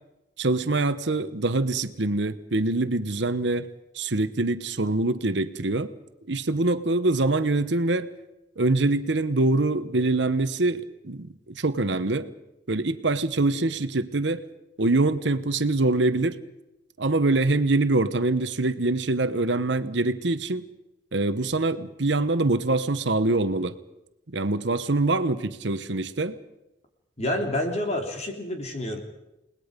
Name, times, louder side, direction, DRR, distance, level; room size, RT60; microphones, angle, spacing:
voice 1, 0.4-3.7 3.9-5.9 6.3-8.1 8.6-12.3 12.7-14.4 14.8-16.4 17.0-20.6 21.1-23.8 24.3-26.4, right 2 dB, 70° right, 11 dB, 1.1 m, -24 dB
voice 2, 27.2-29.0, left 1 dB, 35° left, 3 dB, 3.2 m, -28 dB
29.5 x 19.5 x 5.2 m, 0.94 s
head